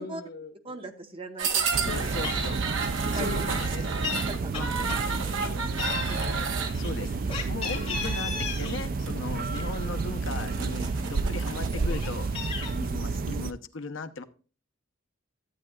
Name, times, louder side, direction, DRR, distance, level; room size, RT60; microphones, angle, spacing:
voice 1, 0.0-0.5 3.1-3.9 4.8-6.0, left 2 dB, 50° left, 1.2 m, -43 dB
voice 2, 0.6-2.1 3.1-3.4 4.3-4.9 6.1-6.3, right 2 dB, 30° right, 1.0 m, -40 dB
sound 1, 1.4-6.7 7.6-8.1 8.5-8.7 9.1-9.2 9.6-9.7 10.1-11.7, right 5 dB, 70° right, 1.2 m, -32 dB
sound 2, 1.7-13.5, right 4 dB, 45° right, 0.4 m, -31 dB
voice 3, 1.8-2.6 3.1-4.1 4.5-4.8 6.0-6.5 6.7-7.1 7.5-12.3 12.7-14.2, left 4 dB, 70° left, 0.7 m, -37 dB
Meow, 2.2-2.5 2.8-3.0 3.3-4.2 4.5-5.5 5.8-8.8 9.2-10.3 10.8-10.9 11.2-12.7, left 6 dB, 30° left, 2.6 m, -36 dB
13.5 x 8.6 x 2.3 m
head